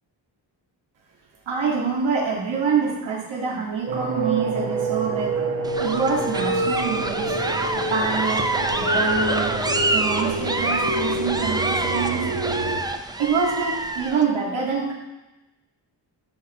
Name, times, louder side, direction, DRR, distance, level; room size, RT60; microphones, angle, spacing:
voice 1, 1.5-5.3 5.8-7.3 7.7-9.5 9.9-12.3 13.2-14.9, right 5 dB, 90° right, -2 dB, 2.1 m, -26 dB
sound 1, 3.9-12.8, right 2 dB, 45° right, 1.1 m, -27 dB
sound 2, 5.6-14.2, right 2 dB, 10° right, 0.4 m, -26 dB
12.0 x 5.8 x 4.2 m, 1.0 s
wide cardioid pair, 145°, 45 cm